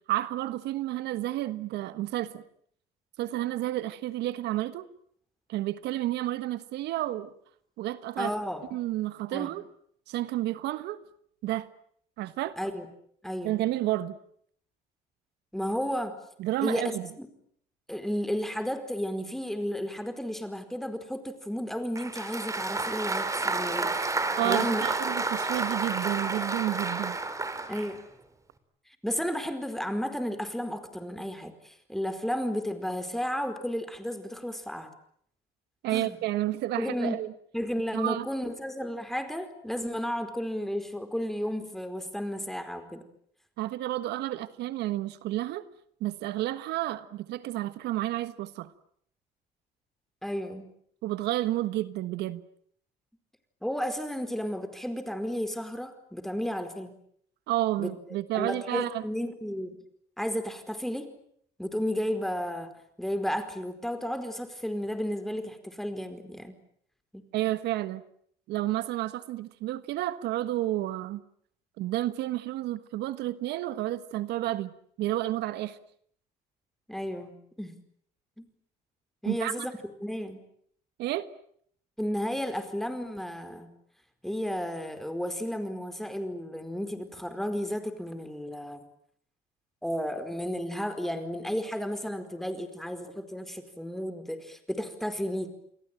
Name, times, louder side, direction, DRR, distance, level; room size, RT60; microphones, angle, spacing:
voice 1, 0.1-2.4 3.2-4.9 5.5-7.3 7.8-8.3 8.7-9.7 10.1-11.0 11.4-11.7 12.2-12.6 13.4-14.2 16.4-17.1 24.4-27.2 35.8-37.3 37.9-38.3 43.6-45.6 46.0-48.7 51.0-52.4 57.5-59.0 67.3-68.0 68.5-71.2 71.8-74.7 75.0-75.8 79.2-79.7 81.0-81.3, right 15 dB, 80° right, 13 dB, 1.5 m, -31 dB
voice 2, 8.2-8.7 9.3-9.5 12.6-12.9 13.2-13.6 15.5-16.2 16.6-16.9 17.2-17.3 17.9-24.1 24.4-24.9 27.7-28.0 29.0-34.9 35.9-36.2 36.8-37.2 37.5-43.0 50.2-50.7 53.6-56.9 57.8-57.9 58.3-59.8 60.2-61.1 61.6-62.7 63.0-66.5 67.1-67.2 76.9-77.8 78.4-78.5 79.2-79.7 80.0-80.4 82.0-83.7 84.2-88.8 89.8-95.5, equal, ahead, 9 dB, 4.6 m, -33 dB
Applause, 22.0-28.0, right 3 dB, 20° right, 3.9 m, -30 dB
29.0 x 21.5 x 9.0 m, 0.66 s
cardioid pair, 110°, 17 cm